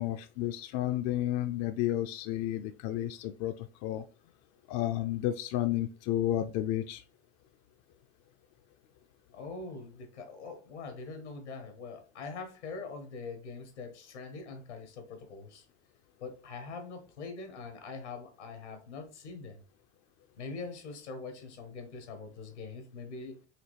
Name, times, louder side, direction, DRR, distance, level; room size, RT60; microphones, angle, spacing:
voice 1, 0.0-4.0 4.7-7.0, left 13 dB, 45° left, 8 dB, 0.4 m, -31 dB
voice 2, 9.3-15.6 16.2-19.6 20.4-23.4, left 4 dB, 85° left, 6 dB, 1.3 m, -43 dB
4.9 x 3.0 x 3.2 m, 0.35 s
hypercardioid pair, 80°, 34 cm